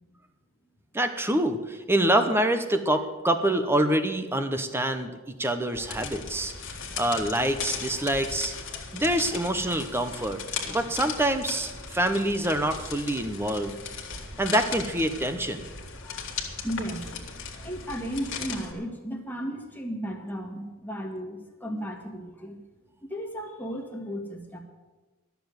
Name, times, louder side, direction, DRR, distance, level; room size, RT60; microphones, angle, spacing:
voice 1, 0.9-6.5 7.0-8.5 8.9-10.4 10.7-13.8 14.4-15.6, right 1 dB, 10° right, 8 dB, 0.8 m, -26 dB
sound 1, 5.7-18.7, left 5 dB, 60° left, 1.8 m, -37 dB
voice 2, 8.7-9.4 14.2-14.3 16.0-16.3 16.6-22.6 23.0-24.6, equal, 10° left, 0 dB, 1.7 m, -35 dB
13.0 x 6.9 x 9.5 m, 1.2 s
head